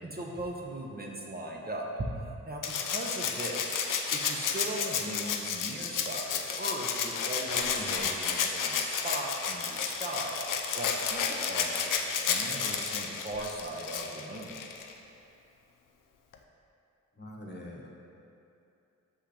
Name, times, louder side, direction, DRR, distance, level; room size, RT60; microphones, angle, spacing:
voice 1, 0.0-2.1 2.4-3.8 4.1-10.4 10.7-11.9 12.3-14.6, right 1 dB, 30° right, -2 dB, 0.8 m, -38 dB
Rattle (instrument), 2.6-14.9 16.3-16.4, left 6 dB, 85° left, 0.5 m, -32 dB
voice 2, 7.8-8.1 17.1-17.9, left 1 dB, 35° left, -2 dB, 1.2 m, -43 dB
5.9 x 5.5 x 3.4 m, 2.7 s
cardioid pair, 50°, 31 cm